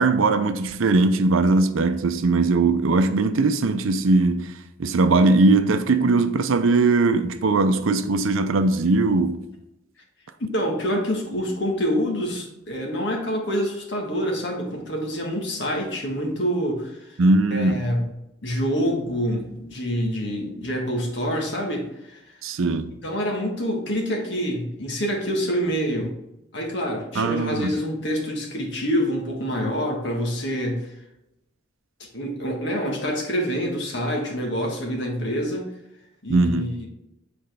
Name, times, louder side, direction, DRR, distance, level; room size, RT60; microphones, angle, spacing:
voice 1, 0.0-4.5 4.8-9.4 17.2-17.9 22.4-22.9 27.2-27.7 36.3-36.7, right 3 dB, 80° right, 0.5 m, -20 dB
voice 2, 10.4-17.2 17.5-18.1 18.4-22.3 23.0-26.1 26.5-30.9 32.1-35.7 36.2-36.9, equal, 60° left, 1.5 m, -26 dB
7.9 x 4.2 x 3.4 m
head